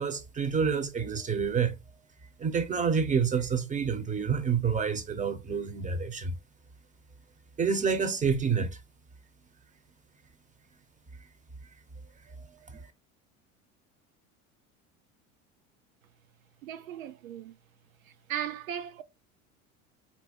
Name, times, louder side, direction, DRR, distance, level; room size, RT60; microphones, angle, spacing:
voice 1, 0.0-1.7 2.4-6.3 7.6-8.8 12.4-12.9, right 6 dB, 20° right, 1.0 m, -28 dB
voice 2, 16.6-17.6 18.0-19.0, right 10 dB, 80° right, 0.6 m, -37 dB
4.1 x 2.9 x 4.4 m
hypercardioid pair, 75°, 41 cm